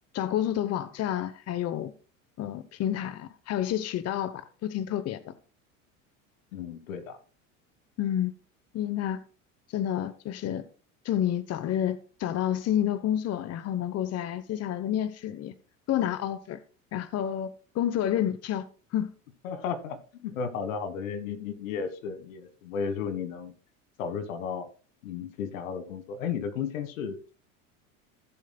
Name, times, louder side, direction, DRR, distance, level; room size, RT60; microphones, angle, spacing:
voice 1, 0.1-1.9 2.4-5.3 8.0-8.3 8.7-9.2 9.7-10.7 11.0-15.5 15.9-16.6 16.9-18.7 18.9-19.1, left 11 dB, 40° left, 0.9 m, -29 dB
voice 2, 6.5-7.2 19.4-23.5 24.0-24.7 25.0-27.3, left 6 dB, 80° left, 1.6 m, -34 dB
16.5 x 7.4 x 2.2 m
hypercardioid pair, 85°, 39 cm